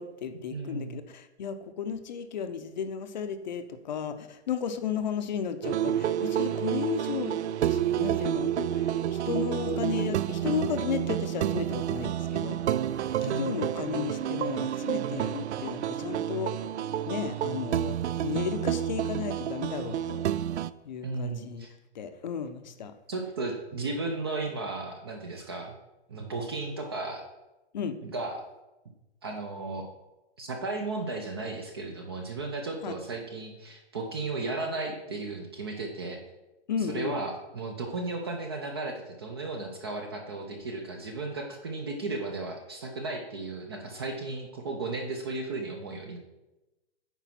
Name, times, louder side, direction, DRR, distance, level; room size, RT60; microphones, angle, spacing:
voice 1, 0.0-7.4 7.7-12.6 13.2-16.6 17.1-18.0 18.2-20.2 20.8-21.7 21.9-22.9 27.7-28.0 32.8-32.9 36.7-37.2, left 7 dB, 40° left, 9 dB, 0.7 m, -34 dB
voice 2, 0.5-1.0 13.2-13.6 21.0-21.7 23.1-25.7 26.1-27.2 28.0-28.4 29.2-29.9 30.4-36.2 36.8-46.2, right 3 dB, 20° right, 3 dB, 0.5 m, -35 dB
sound 1, 5.6-20.7, right 10 dB, 75° right, 0.5 m, -29 dB
9.2 x 4.7 x 5.8 m, 1.0 s
hypercardioid pair, 170°, 35 cm